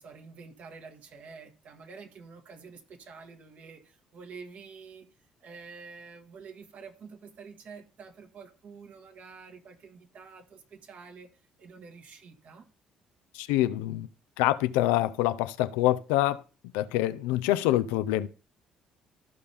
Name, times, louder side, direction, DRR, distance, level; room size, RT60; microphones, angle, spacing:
voice 1, 0.0-12.7, right 5 dB, 60° right, 1.6 m, -48 dB
voice 2, 13.3-14.1 14.4-16.4 16.7-18.3, left 15 dB, 85° left, 0.4 m, -26 dB
13.5 x 5.4 x 3.4 m
hypercardioid pair, 60°, 3 cm